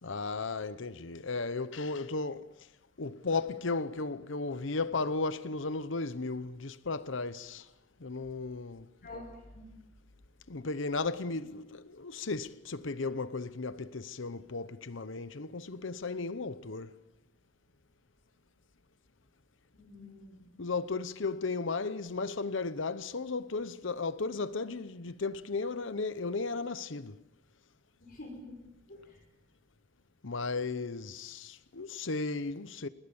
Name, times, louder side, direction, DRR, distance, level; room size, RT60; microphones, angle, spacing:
voice 1, 0.0-2.7 3.0-7.7 8.0-8.9 10.5-16.9 20.6-27.2 30.2-32.9, left 3 dB, 70° left, 0.9 m, -35 dB
voice 2, 9.0-9.7 19.7-20.4 28.0-29.2, left 2 dB, 50° left, 5.2 m, -48 dB
29.5 x 20.5 x 7.2 m
head